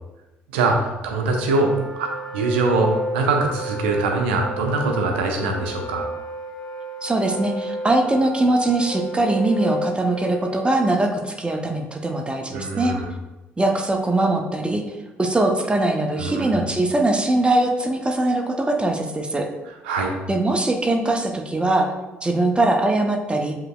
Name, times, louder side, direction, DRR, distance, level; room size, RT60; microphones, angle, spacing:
voice 1, 0.5-6.1 12.5-13.1 16.2-16.5 19.8-20.2, right 3 dB, 75° right, 2 dB, 0.7 m, -23 dB
Wind instrument woodwind instrument, 1.1-11.0, equal, 10° left, 1.0 m, -32 dB
voice 2, 7.0-13.0 13.6-14.8 15.2-19.5 20.3-21.9 22.2-23.6, right 2 dB, 15° right, 3 dB, 0.7 m, -21 dB
7.7 x 2.9 x 2.3 m, 1.1 s
figure-of-eight pair, 50°, 6 cm